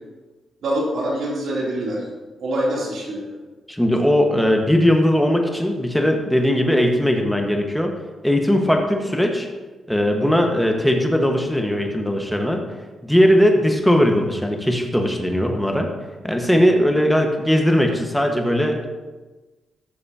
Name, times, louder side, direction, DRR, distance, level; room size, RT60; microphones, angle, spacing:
voice 1, 0.6-2.1 2.4-3.3 10.2-10.4, right 1 dB, 75° right, -4 dB, 3.2 m, -25 dB
voice 2, 3.7-7.9 8.2-9.5 9.9-12.6 13.0-15.9 16.2-18.9, equal, 5° left, 2 dB, 1.5 m, -19 dB
14.0 x 6.5 x 2.9 m, 1.2 s
cardioid pair, 65°, 0 cm